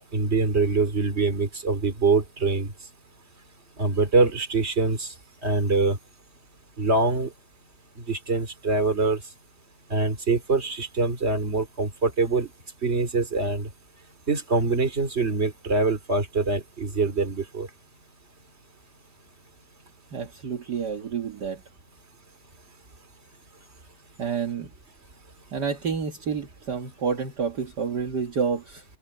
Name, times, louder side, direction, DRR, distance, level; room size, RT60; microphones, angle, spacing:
voice 1, 0.1-2.7 3.8-5.1 5.4-6.0 6.8-7.3 8.1-9.2 9.9-12.5 12.8-13.7 14.3-17.7, right 3 dB, 20° right, 2.7 m, -24 dB
voice 2, 20.1-21.6 24.2-24.7 25.5-28.8, right 6 dB, 45° right, 1.5 m, -29 dB
omnidirectional pair, 4.0 m